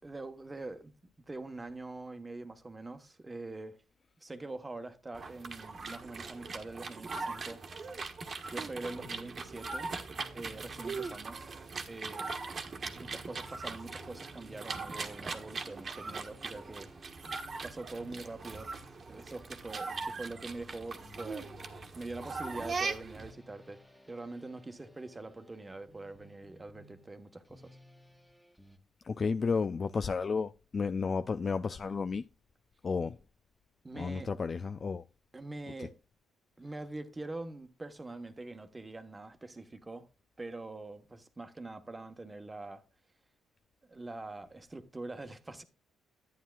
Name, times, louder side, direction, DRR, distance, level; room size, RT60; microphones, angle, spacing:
voice 1, 0.0-0.9 1.3-3.8 4.2-7.6 7.9-8.1 8.5-9.9 10.3-11.6 11.9-12.3 12.9-16.9 17.6-18.7 19.1-21.5 21.9-23.8 24.1-27.6 33.8-34.3 35.3-35.9 36.6-40.1 40.4-42.8 43.9-45.6, right 2 dB, 20° right, 1.2 m, -44 dB
sound 1, 5.1-23.3, right 4 dB, 40° right, 1.3 m, -40 dB
sound 2, 12.8-28.8, left 2 dB, 5° left, 1.6 m, -58 dB
voice 2, 29.0-32.2 32.8-33.2 33.9-35.0 35.8-35.9, left 5 dB, 40° left, 0.3 m, -32 dB
11.5 x 9.2 x 2.4 m
cardioid pair, 90°, 0 cm